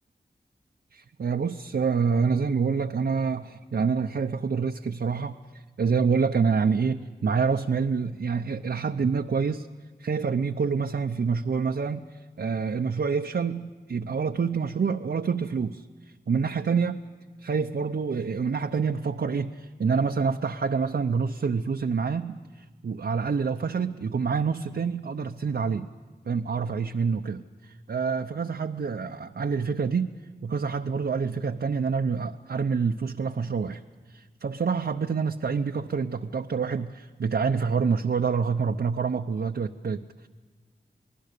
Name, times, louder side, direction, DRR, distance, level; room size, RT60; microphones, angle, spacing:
voice 1, 0.9-9.7 10.0-15.9 16.3-17.0 17.4-25.9 26.2-30.1 30.4-33.8 34.1-40.3, right 5 dB, 70° right, 4 dB, 0.7 m, -27 dB
28.5 x 19.5 x 6.7 m, 1.5 s
wide cardioid pair, 55°, 17 cm